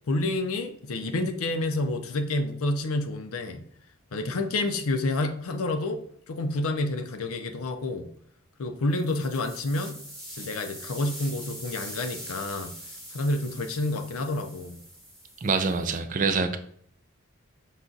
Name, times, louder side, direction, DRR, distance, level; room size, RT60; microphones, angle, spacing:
voice 1, 0.1-3.6 4.1-6.0 6.3-8.1 8.6-10.0 10.3-12.7 13.1-14.8, left 2 dB, 80° left, 0.5 m, -29 dB
sound 1, 8.9-16.0, right 1 dB, ahead, 1.0 m, -43 dB
voice 2, 15.4-16.6, right 4 dB, 35° right, 0.4 m, -25 dB
5.5 x 2.4 x 3.8 m
head